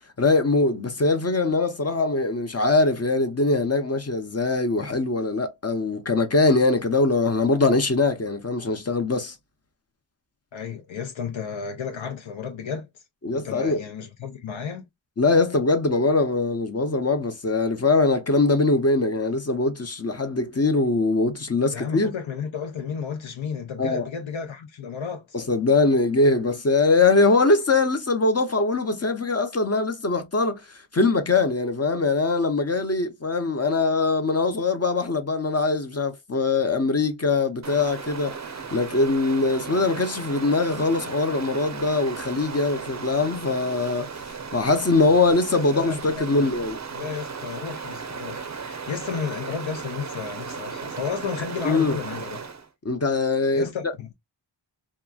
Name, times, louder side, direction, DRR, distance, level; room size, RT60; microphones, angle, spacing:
voice 1, 0.2-9.4 13.2-13.8 15.2-22.1 23.8-24.0 25.3-30.6 30.9-38.4 38.7-44.1 44.5-46.8 51.6-52.0 52.8-53.7, left 3 dB, 35° left, 0.5 m, -22 dB
voice 2, 10.5-12.9 13.3-14.8 21.7-25.4 45.5-46.5 47.0-52.5 53.5-54.1, left 6 dB, 80° left, 0.7 m, -33 dB
Stream, 37.6-52.7, right 5 dB, 35° right, 0.5 m, -36 dB
2.8 x 2.4 x 2.2 m
wide cardioid pair, 85°, 46 cm